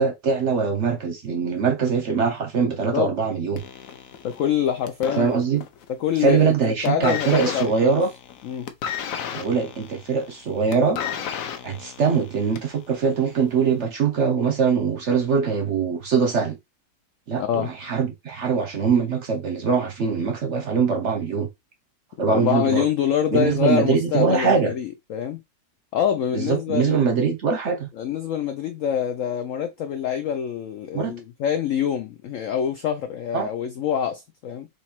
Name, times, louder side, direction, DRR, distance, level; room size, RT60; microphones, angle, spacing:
voice 1, 0.0-3.6 5.2-5.6 6.2-8.1 9.3-11.0 11.6-16.6 17.3-21.5 22.2-22.9 23.3-24.7 26.3-27.9 30.9-31.1 33.3-33.5, right 5 dB, 55° right, 0.8 m, -22 dB
sound 1, 3.6-5.9 6.2-6.5 6.8-12.8 13.6-13.7, left 8 dB, 65° left, 0.9 m, -33 dB
voice 2, 4.2-5.3 5.9-8.0 8.4-8.7 17.4-17.7 22.3-25.4 25.9-27.1 28.0-34.7, left 9 dB, 85° left, 0.7 m, -25 dB
4.0 x 3.0 x 4.3 m
omnidirectional pair, 1.9 m